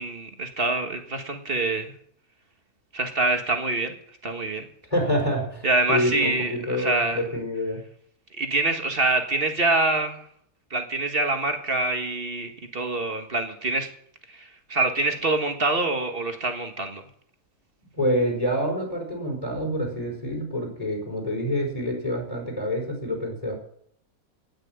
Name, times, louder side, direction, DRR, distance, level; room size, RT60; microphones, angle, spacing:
voice 1, 0.0-1.9 2.9-3.9 4.2-4.7 5.6-7.2 8.4-10.2 10.7-13.9 14.3-17.0, right 2 dB, 40° right, 5 dB, 1.8 m, -25 dB
voice 2, 4.9-7.8 17.9-23.5, equal, 25° left, 0 dB, 4.5 m, -27 dB
17.5 x 6.3 x 9.0 m, 0.66 s
omnidirectional pair, 1.6 m